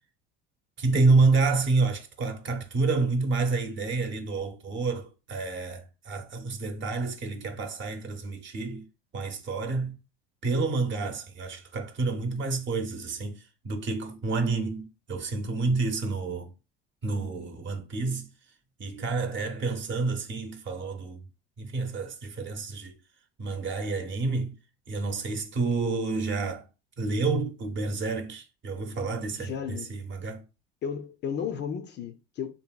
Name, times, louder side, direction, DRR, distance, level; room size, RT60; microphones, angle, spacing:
voice 1, 0.8-8.8 9.1-10.0 10.4-16.5 17.0-18.3 18.8-21.3 21.6-22.9 23.4-24.6 24.9-26.6 27.0-30.4, right 3 dB, 40° right, 0.8 m, -29 dB
voice 2, 29.3-29.9 30.8-32.5, left 7 dB, 40° left, 0.4 m, -34 dB
2.8 x 2.7 x 2.2 m
supercardioid pair, 90°, 30 cm